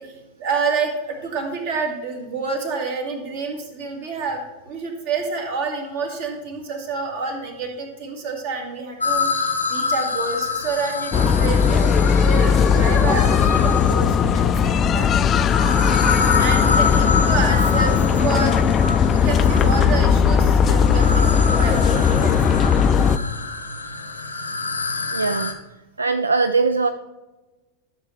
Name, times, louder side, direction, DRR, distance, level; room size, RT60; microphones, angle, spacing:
voice 1, 0.0-15.1 16.3-22.6, right 4 dB, 50° right, 2 dB, 2.0 m, -28 dB
sound 1, 9.0-14.2 15.0-25.5, left 4 dB, 80° left, 0.9 m, -27 dB
sound 2, 11.1-23.2, left 7 dB, 25° left, 0.4 m, -17 dB
voice 2, 25.1-25.5 26.0-26.9, right 4 dB, 80° right, 11 dB, 0.3 m, -20 dB
13.0 x 6.5 x 3.2 m, 1.1 s
figure-of-eight pair, 90°, 0 cm